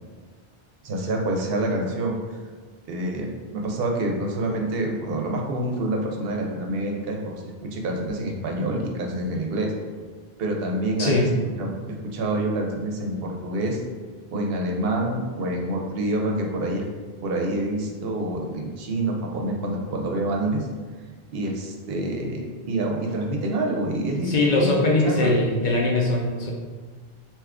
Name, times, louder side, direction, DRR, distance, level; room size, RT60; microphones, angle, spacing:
voice 1, 0.8-2.1 2.9-7.3 7.6-9.7 10.4-11.3 11.6-13.8 14.3-16.8 17.2-20.7 21.3-24.7 25.0-25.3, right 1 dB, 70° right, 1 dB, 0.8 m, -27 dB
voice 2, 11.0-11.3 24.2-26.5, left 2 dB, 60° left, -2 dB, 0.6 m, -21 dB
2.8 x 2.3 x 3.5 m, 1.5 s
omnidirectional pair, 1.0 m